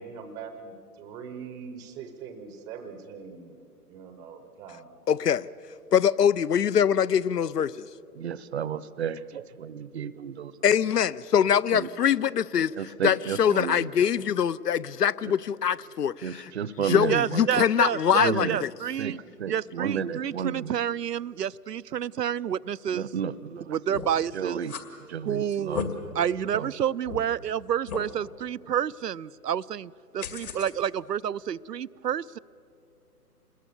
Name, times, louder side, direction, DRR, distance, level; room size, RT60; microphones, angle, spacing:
voice 1, 0.0-3.6 3.9-4.9, right 6 dB, 10° right, 0.6 m, -42 dB
voice 2, 5.1-5.5 5.9-7.9 10.6-12.7 13.0-16.5 16.8-18.7, left 8 dB, 80° left, 0.7 m, -23 dB
voice 3, 8.1-10.5 11.7-11.9 12.8-13.9 15.2-15.3 16.2-17.4 18.1-18.6 19.0-19.1 19.4-20.7 22.9-23.7 24.3-24.7 25.1-25.9 26.5-26.7, right 8 dB, 45° right, 0.7 m, -32 dB
voice 4, 17.1-19.2 19.5-23.1 23.7-24.6 25.2-25.8 26.1-32.4, right 9 dB, 85° right, 0.6 m, -29 dB
sound 1, 23.9-24.2 24.6-24.8 25.5-25.9 26.5-26.6 27.0-27.2 27.9-28.1 30.2-30.7, left 7 dB, 65° left, 2.4 m, -34 dB
27.0 x 20.5 x 7.0 m
figure-of-eight pair, 130°, 47 cm